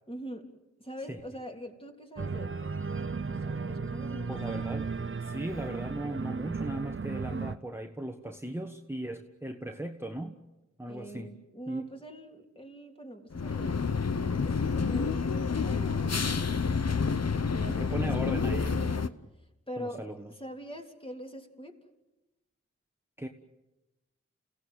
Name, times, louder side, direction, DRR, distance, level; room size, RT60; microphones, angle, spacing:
voice 1, 0.1-2.6 3.3-4.8 10.9-13.9 14.4-16.6 17.5-18.3 18.6-19.1 19.4-21.8, equal, 20° left, 2 dB, 3.5 m, -44 dB
Organ, 2.2-7.6, right 4 dB, 45° right, 0.9 m, -35 dB
voice 2, 4.3-4.9 5.2-10.4 10.8-11.3 11.7-11.9 17.7-19.0 19.8-20.3 23.2-23.3, right 1 dB, 10° right, 3 dB, 1.5 m, -37 dB
sound 1, 13.3-19.1, left 5 dB, 60° left, 0.9 m, -29 dB
29.0 x 17.0 x 9.2 m, 1.0 s
wide cardioid pair, 45°, 29 cm